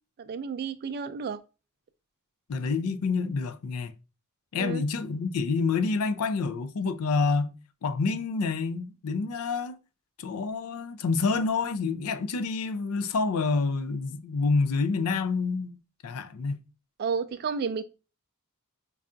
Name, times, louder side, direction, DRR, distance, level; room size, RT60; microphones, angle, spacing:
voice 1, 0.2-1.4 4.6-4.8 17.0-17.8, right 5 dB, 45° right, 0.3 m, -31 dB
voice 2, 2.5-3.9 4.5-7.5 7.8-9.8 10.2-15.8 16.0-16.6, left 4 dB, 70° left, 0.4 m, -28 dB
5.3 x 2.4 x 2.5 m
head